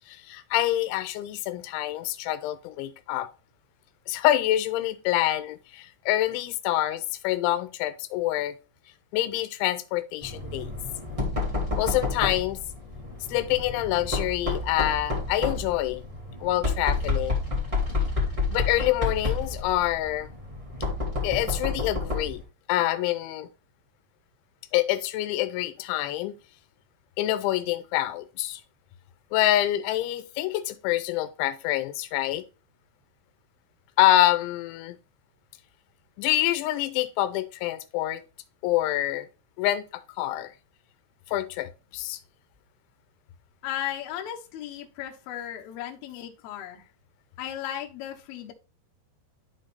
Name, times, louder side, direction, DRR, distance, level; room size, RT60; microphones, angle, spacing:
voice 1, 0.1-3.3 4.1-8.6 9.1-10.7 11.8-12.6 13.3-16.0 16.4-17.4 18.5-20.3 21.2-22.4 22.7-23.5 24.7-26.4 27.2-28.6 29.3-32.4 34.0-35.0 36.2-38.2 38.6-39.3 39.6-40.5 41.3-42.2, left 14 dB, 90° left, 3.0 m, -26 dB
Knock, 10.2-22.4, left 3 dB, 15° right, 1.0 m, -30 dB
voice 2, 43.6-46.8 47.4-48.5, left 11 dB, 70° left, 2.5 m, -35 dB
12.0 x 4.1 x 2.5 m
omnidirectional pair, 5.3 m